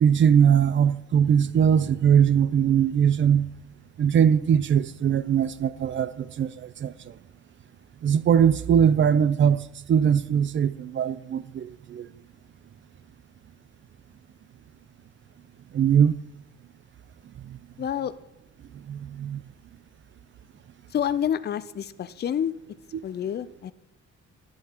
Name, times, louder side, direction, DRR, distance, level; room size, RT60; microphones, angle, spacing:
voice 1, 0.0-3.5 4.0-6.9 8.0-9.6 9.9-12.1 15.7-16.1 17.5-17.6 18.9-19.4, right 8 dB, 40° right, 0.5 m, -21 dB
voice 2, 17.8-18.1 20.9-22.5 23.0-23.7, left 9 dB, 35° left, 0.4 m, -28 dB
10.5 x 8.7 x 2.9 m
cardioid pair, 90°, 30 cm